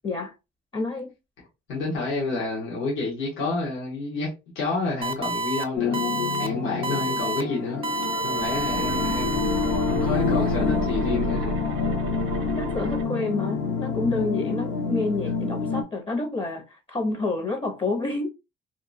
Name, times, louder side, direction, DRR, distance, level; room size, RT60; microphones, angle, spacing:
voice 1, 0.0-0.3 0.7-1.1 12.6-18.3, left 3 dB, 25° left, 0.5 m, -28 dB
voice 2, 1.7-4.3 4.5-6.0 6.4-7.9 8.2-9.6 9.9-11.6, left 3 dB, 90° left, 1.2 m, -29 dB
sound 1, 5.0-5.6 5.9-6.5 6.8-7.4 7.8-10.2, right 2 dB, 30° right, 0.4 m, -29 dB
sound 2, 5.8-15.8, left 5 dB, 75° left, 0.6 m, -27 dB
sound 3, 8.1-13.0, right 4 dB, 90° right, 0.4 m, -33 dB
2.8 x 2.3 x 2.5 m
cardioid pair, 90°, 20 cm